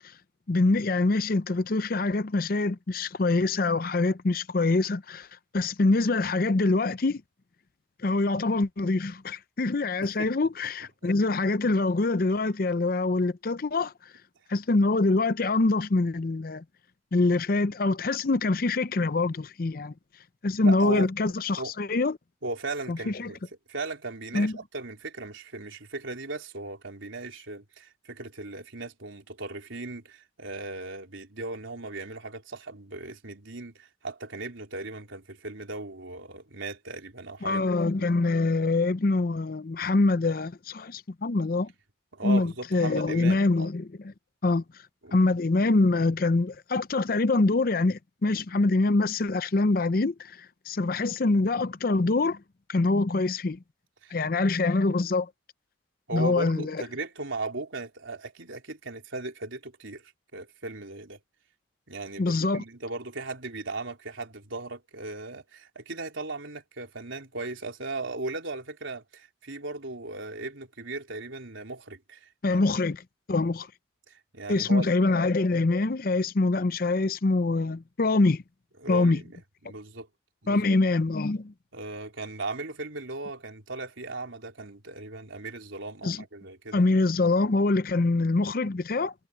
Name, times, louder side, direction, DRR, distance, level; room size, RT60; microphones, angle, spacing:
voice 1, 0.5-5.3 5.5-7.2 8.0-13.9 14.5-16.6 17.1-19.9 20.4-22.2 22.9-23.3 24.3-24.5 37.4-41.7 42.2-44.1 44.4-44.6 45.1-52.4 52.7-53.6 54.1-55.3 56.1-56.8 62.2-62.6 72.4-73.7 74.5-78.4 78.9-79.2 80.5-81.5 86.0-86.2 86.7-89.1, left 3 dB, 45° left, 0.6 m, -25 dB
voice 2, 20.6-21.1 21.5-21.7 22.4-23.4 23.7-37.7 38.0-38.1 42.1-43.7 45.0-45.1 54.0-54.2 56.1-61.2 61.9-72.6 74.1-74.9 78.8-79.3 79.6-80.1 80.4-80.6 81.7-86.8, right 3 dB, 85° right, 3.8 m, -37 dB
head